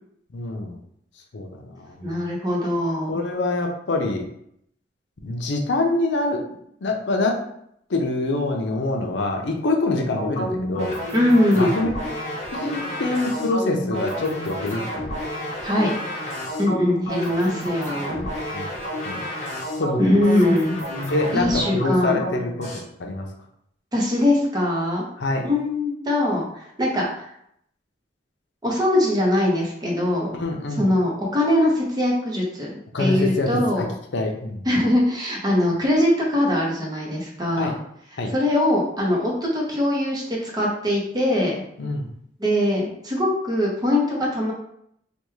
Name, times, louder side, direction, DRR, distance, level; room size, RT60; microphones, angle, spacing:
voice 1, 0.3-0.8 1.3-2.2 3.1-4.3 5.2-6.5 6.8-7.5 7.9-11.0 11.5-11.9 12.5-14.8 18.5-18.7 19.0-19.2 19.8-20.2 21.1-23.3 25.2-25.5 30.3-30.9 32.9-33.9 34.1-34.6 37.6-37.8 38.2-38.3 41.8-42.1, left 2 dB, 70° left, 2 dB, 0.6 m, -25 dB
voice 2, 2.0-3.2 11.1-11.7 15.6-16.0 16.6-18.3 20.0-20.8 21.3-22.2 23.9-25.0 25.4-27.3 28.6-30.3 30.8-33.9 34.7-37.7 38.3-41.6 42.4-44.5, left 1 dB, 20° right, -3 dB, 0.7 m, -22 dB
sound 1, 10.2-22.8, equal, 40° left, 1.1 m, -30 dB
3.4 x 2.2 x 3.1 m, 0.71 s
head